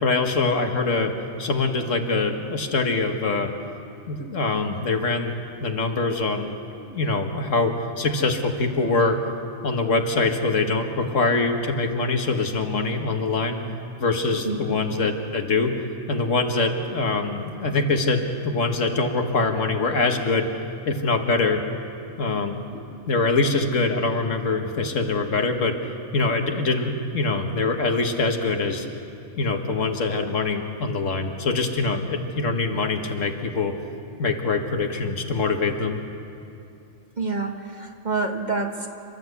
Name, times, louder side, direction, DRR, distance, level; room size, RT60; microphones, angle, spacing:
voice 1, 0.0-1.1 1.4-3.5 4.1-5.3 5.6-9.2 9.6-13.6 14.0-15.7 16.1-20.5 20.9-21.6 22.2-25.8 26.1-28.9 29.4-33.7 34.2-36.0, left 3 dB, 70° left, 4 dB, 1.7 m, -24 dB
voice 2, 37.2-38.9, right 3 dB, 35° right, 3 dB, 1.4 m, -27 dB
28.5 x 12.0 x 8.1 m, 2.7 s
omnidirectional pair, 1.4 m